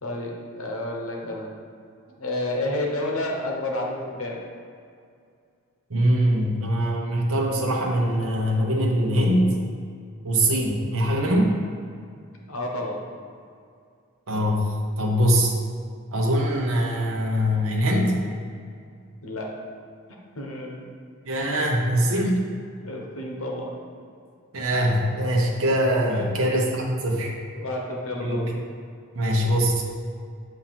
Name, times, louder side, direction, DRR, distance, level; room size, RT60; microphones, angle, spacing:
voice 1, 0.0-1.5 2.2-4.4 12.5-13.0 19.2-19.5 20.4-20.8 22.8-23.7 26.1-26.2 27.6-28.5, left 1 dB, 85° left, 0 dB, 1.0 m, -30 dB
voice 2, 5.9-9.6 10.2-11.5 14.3-14.7 15.0-15.5 16.1-18.2 21.2-22.4 24.5-27.3 28.2-28.6 29.1-29.8, equal, 80° right, -2 dB, 0.9 m, -22 dB
7.0 x 2.8 x 5.8 m, 2.3 s
head